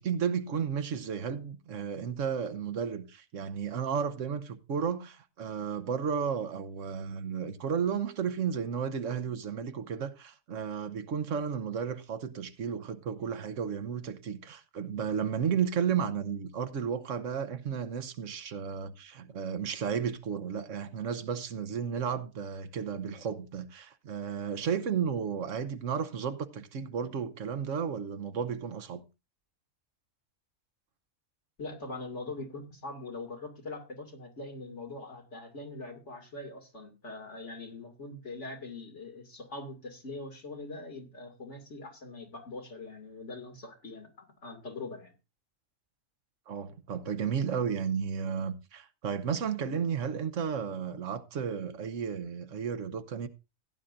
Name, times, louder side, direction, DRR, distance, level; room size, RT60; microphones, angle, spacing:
voice 1, 0.0-29.0 46.5-53.3, right 7 dB, 70° right, 1.3 m, -33 dB
voice 2, 31.6-45.1, left 2 dB, 60° left, 2.8 m, -42 dB
16.0 x 10.0 x 2.6 m
omnidirectional pair, 1.4 m